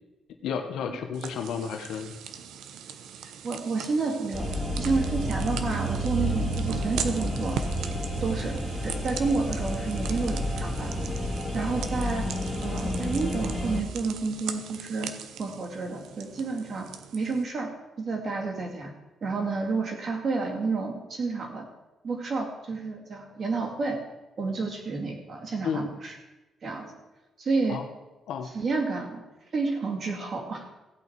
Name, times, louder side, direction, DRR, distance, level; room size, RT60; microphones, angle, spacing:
voice 1, 0.4-2.1 25.6-25.8 27.7-27.9 28.3-28.5, left 6 dB, 85° left, 5 dB, 1.1 m, -32 dB
sound 1, 1.1-17.4, right 8 dB, 85° right, 0.8 m, -40 dB
voice 2, 3.2-4.5 4.8-7.7 8.2-11.0 11.5-12.3 12.6-15.1 15.4-16.9 17.1-17.7 18.0-18.9 19.2-21.6 22.0-24.0 24.4-26.1 26.6-26.9 27.4-27.8 28.5-29.2 29.5-30.7, right 4 dB, 40° right, 2 dB, 2.4 m, -30 dB
sound 2, 4.3-13.8, equal, 20° left, 2.3 m, -30 dB
16.0 x 8.4 x 4.6 m, 1.1 s
cardioid pair, 145°, 0 cm